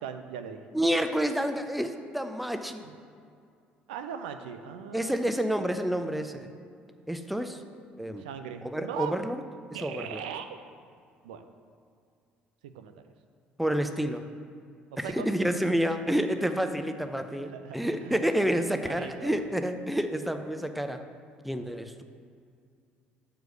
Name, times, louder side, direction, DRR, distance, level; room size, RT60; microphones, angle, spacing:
voice 1, 0.0-0.6 2.8-3.0 3.9-5.2 8.2-9.2 9.7-10.6 11.2-11.4 12.6-13.0 14.9-15.3 17.3-18.3 18.8-19.4, right 8 dB, 70° right, 8 dB, 0.4 m, -39 dB
voice 2, 0.7-2.8 4.9-6.5 7.1-7.6 8.0-8.2 8.7-9.4 9.8-10.2 13.6-14.2 15.0-21.0 21.4-22.0, equal, ahead, 7 dB, 0.5 m, -29 dB
6.8 x 4.6 x 6.3 m, 2.3 s
figure-of-eight pair, 50°, 5 cm